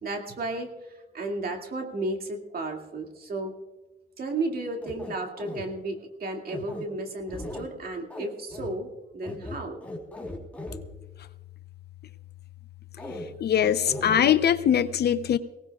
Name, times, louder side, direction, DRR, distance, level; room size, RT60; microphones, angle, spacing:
voice 1, 0.0-3.5 4.2-9.8, right 2 dB, 50° right, 2 dB, 2.3 m, -33 dB
sound 1, 4.8-5.6 6.5-6.8 7.3-7.7 8.1-8.3 8.5-8.7 9.2-10.8 13.0-13.2 13.6-14.4, left 2 dB, 5° left, 3.5 m, -37 dB
voice 2, 13.4-15.4, left 9 dB, 55° left, 14 dB, 0.7 m, -22 dB
22.0 x 18.0 x 2.4 m, 1.1 s
cardioid pair, 90°, 20 cm